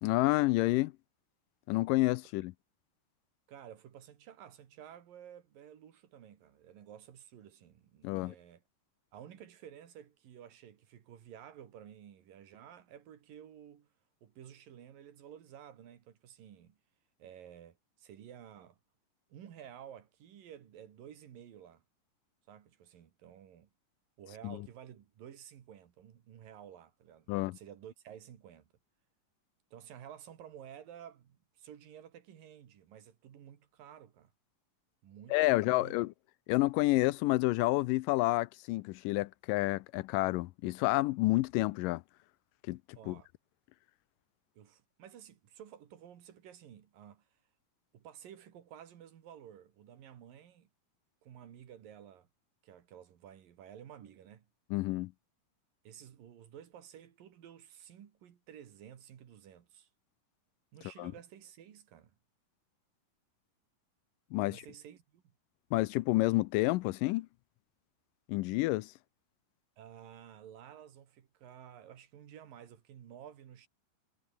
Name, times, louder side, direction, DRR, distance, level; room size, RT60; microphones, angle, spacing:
voice 1, 0.0-0.9 1.7-2.5 8.0-8.3 24.4-24.6 27.3-27.6 35.3-36.1 36.5-42.0 42.7-42.8 43.1-43.2 54.7-55.1 61.0-61.1 64.3-64.6 65.7-67.3 68.3-68.9, left 20 dB, 80° left, 2.2 m, -29 dB
voice 2, 3.5-8.6 9.1-13.9 14.2-16.8 17.2-18.8 19.3-21.8 22.5-23.7 24.2-28.7 29.7-34.3 35.0-36.0 43.0-43.3 44.6-47.3 47.9-50.7 51.2-52.3 52.6-54.5 55.9-59.9 60.7-62.2 64.4-65.3 69.8-73.7, right 9 dB, 80° right, 3.9 m, -53 dB
omnidirectional pair, 3.9 m